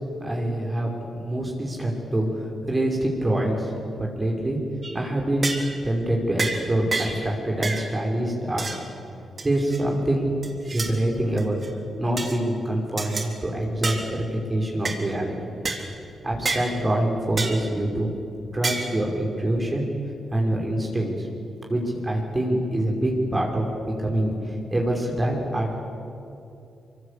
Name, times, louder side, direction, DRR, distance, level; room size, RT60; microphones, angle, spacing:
voice 1, 0.2-4.6 4.9-8.7 9.4-10.3 10.7-11.6 12.0-15.4 16.2-18.1 18.5-19.8 20.3-21.3 21.7-23.7 24.0-25.8, right 1 dB, 25° right, 0 dB, 5.6 m, -25 dB
sound 1, 4.8-5.0 5.4-5.7 6.4-6.6 6.9-7.2 7.6-7.9 8.6-8.8 9.4-9.8 10.4-10.9 11.4-11.7 12.2-12.4 13.0-13.3 13.8-14.1 14.8-15.0 15.6-15.8 16.5-16.7 17.4-17.6 18.6-19.0, right 3 dB, 45° right, 3.7 m, -28 dB
24.5 x 24.0 x 8.5 m, 2.7 s
cardioid pair, 65°, 0 cm